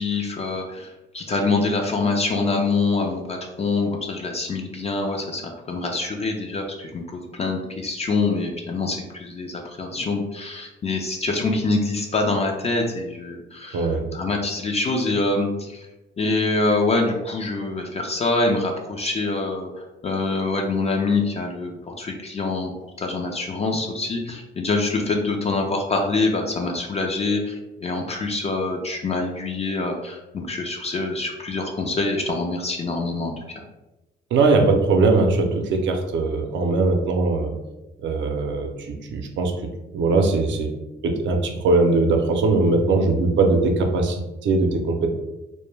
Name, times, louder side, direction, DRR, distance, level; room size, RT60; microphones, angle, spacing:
voice 1, 0.0-15.9 16.2-19.7 20.0-22.7 23.0-33.3, left 3 dB, 30° left, 1 dB, 0.4 m, -25 dB
voice 2, 13.7-14.0 34.3-37.5 38.0-39.5 39.9-40.7 41.0-45.1, right 3 dB, 70° right, 3 dB, 0.5 m, -20 dB
2.2 x 2.1 x 3.1 m, 1.0 s
cardioid pair, 90°, 20 cm